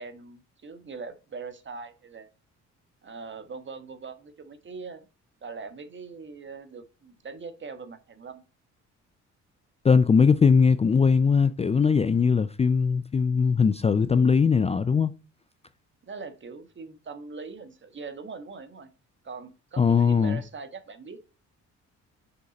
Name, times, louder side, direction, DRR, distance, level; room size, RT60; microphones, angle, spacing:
voice 1, 0.0-2.3 3.0-5.1 5.4-8.4 16.1-18.9 19.2-21.2, right 4 dB, 40° right, 1.4 m, -41 dB
voice 2, 9.8-15.1 19.8-20.4, left 5 dB, 20° left, 0.4 m, -20 dB
6.6 x 5.3 x 4.1 m
cardioid pair, 90°, 30 cm